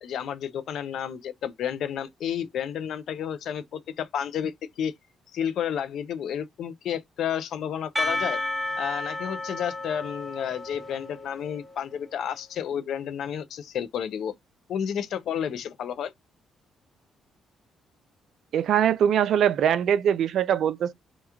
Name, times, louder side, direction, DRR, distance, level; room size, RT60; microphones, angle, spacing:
voice 1, 0.0-4.9 5.3-8.4 8.8-14.3 14.7-16.1, left 9 dB, 70° left, 0.5 m, -31 dB
Percussion, 8.0-11.9, left 1 dB, 5° right, 1.1 m, -32 dB
voice 2, 18.5-20.9, right 9 dB, 70° right, 0.4 m, -22 dB
2.9 x 2.3 x 3.5 m
cardioid pair, 90°, 0 cm